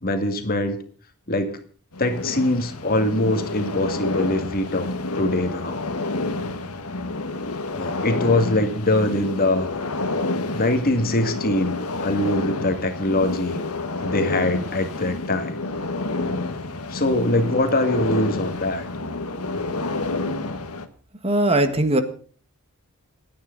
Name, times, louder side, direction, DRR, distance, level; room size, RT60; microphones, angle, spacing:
voice 1, 0.0-0.8 1.3-1.6 2.0-5.8 7.7-9.7 10.5-13.6 14.0-15.6 16.9-18.9, left 1 dB, 40° left, 6 dB, 2.2 m, -23 dB
sound 1, 1.9-20.9, left 2 dB, 80° left, 1.5 m, -29 dB
voice 2, 21.2-22.0, right 1 dB, 25° right, 8 dB, 1.5 m, -19 dB
28.0 x 9.7 x 4.0 m, 0.43 s
head